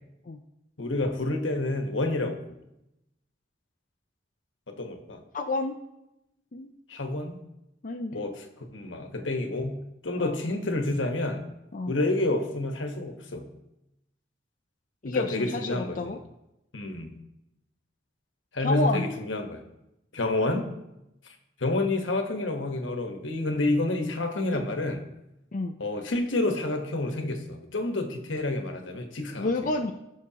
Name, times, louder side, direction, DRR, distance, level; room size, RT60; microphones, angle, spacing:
voice 1, 0.8-2.4 4.7-5.2 6.9-7.4 8.1-9.8 10.0-11.4 11.9-13.5 15.0-16.1 16.7-17.1 18.5-19.6 20.1-20.7 21.6-25.0 25.8-29.5, left 2 dB, 80° left, 5 dB, 1.2 m, -29 dB
voice 2, 5.3-5.7 6.5-6.7 7.8-8.2 10.2-10.4 11.7-11.9 15.0-16.2 18.6-19.1 24.5-24.6 25.5-25.8 29.4-29.9, left 2 dB, 45° left, 4 dB, 0.5 m, -29 dB
17.5 x 6.5 x 2.9 m, 0.89 s
head